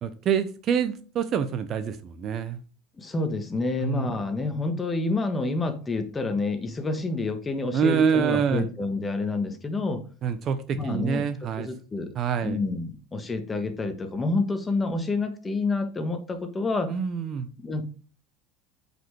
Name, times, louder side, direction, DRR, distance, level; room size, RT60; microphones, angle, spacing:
voice 1, 0.0-2.6 3.8-4.1 7.7-8.6 10.2-11.7 12.1-12.6 16.9-17.5, right 7 dB, 40° right, 0.9 m, -26 dB
voice 2, 3.0-10.0 10.7-11.2 11.6-12.1 12.4-16.9 17.6-17.8, left 3 dB, 20° left, 1.4 m, -28 dB
7.7 x 5.5 x 4.7 m
supercardioid pair, 125°, 0 cm